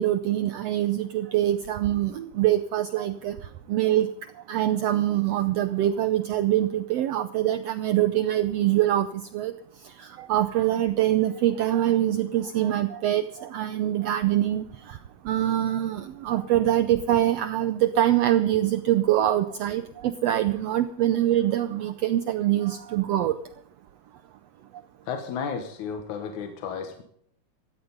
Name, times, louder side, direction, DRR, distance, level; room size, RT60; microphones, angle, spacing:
voice 1, 0.0-3.4 3.7-4.1 4.5-9.5 9.8-15.0 15.2-23.4, right 12 dB, 80° right, 11 dB, 1.5 m, -24 dB
voice 2, 25.1-27.0, left 6 dB, 75° left, 6 dB, 2.5 m, -33 dB
17.0 x 14.5 x 3.9 m, 0.66 s
omnidirectional pair, 3.5 m